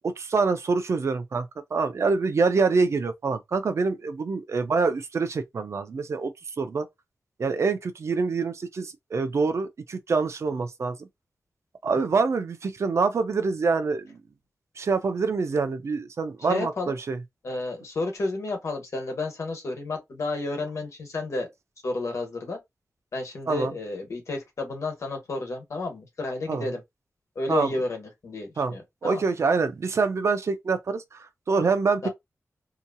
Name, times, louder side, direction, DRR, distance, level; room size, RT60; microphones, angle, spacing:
voice 1, 0.0-6.3 6.6-6.9 7.4-11.1 11.8-14.2 14.8-17.2 23.5-23.7 26.5-26.7 27.5-27.7 28.6-28.7 29.0-32.1, right 4 dB, 60° right, 0.5 m, -25 dB
voice 2, 16.5-16.9 17.4-21.5 21.8-22.6 23.1-26.8 27.3-29.2 32.0-32.1, left 2 dB, 65° left, 1.2 m, -31 dB
2.8 x 2.6 x 2.3 m
wide cardioid pair, 115°, 5 cm